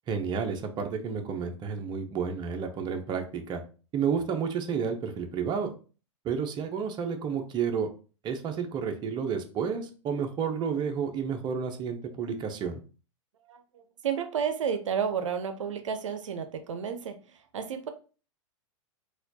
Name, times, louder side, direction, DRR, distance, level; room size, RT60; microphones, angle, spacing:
voice 1, 0.1-3.6 3.9-5.7 6.2-7.9 8.2-12.8, right 6 dB, 30° right, 5 dB, 0.6 m, -31 dB
voice 2, 13.5-17.9, right 7 dB, 80° right, 9 dB, 0.5 m, -32 dB
4.1 x 2.3 x 2.7 m, 0.36 s
hypercardioid pair, 105°, 16 cm